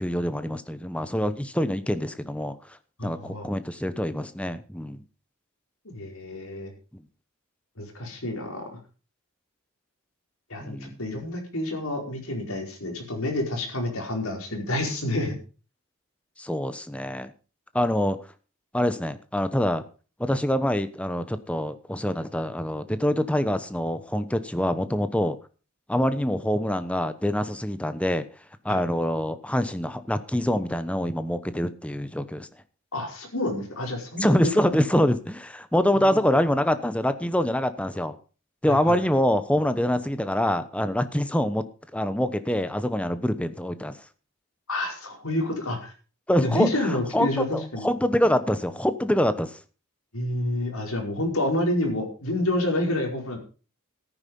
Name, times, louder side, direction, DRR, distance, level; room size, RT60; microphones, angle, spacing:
voice 1, 0.0-2.6 3.0-5.0 10.6-11.0 16.4-17.3 17.7-18.2 18.7-19.8 20.2-25.4 25.9-28.2 28.6-32.5 34.2-38.1 38.6-41.7 41.9-43.9 46.3-49.5, equal, 5° left, 12 dB, 1.0 m, -25 dB
voice 2, 3.0-3.5 5.9-6.7 7.8-8.6 10.5-15.4 28.7-28.8 32.9-34.4 36.0-36.4 38.7-39.0 44.7-45.9 46.4-47.9 50.1-53.4, left 1 dB, 90° left, 2 dB, 5.0 m, -29 dB
14.0 x 9.8 x 5.5 m, 0.36 s
head